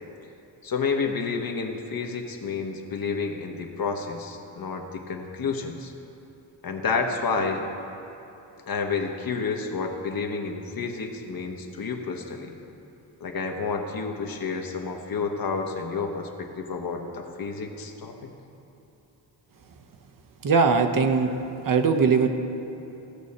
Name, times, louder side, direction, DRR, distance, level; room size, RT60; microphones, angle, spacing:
voice 1, 0.6-5.9 6.6-7.6 8.7-12.5 13.2-18.3, left 4 dB, 55° left, 3 dB, 1.1 m, -30 dB
voice 2, 20.4-21.3 21.6-22.3, right 5 dB, 50° right, 6 dB, 0.8 m, -20 dB
16.5 x 6.3 x 4.2 m, 3.0 s
cardioid pair, 95°, 44 cm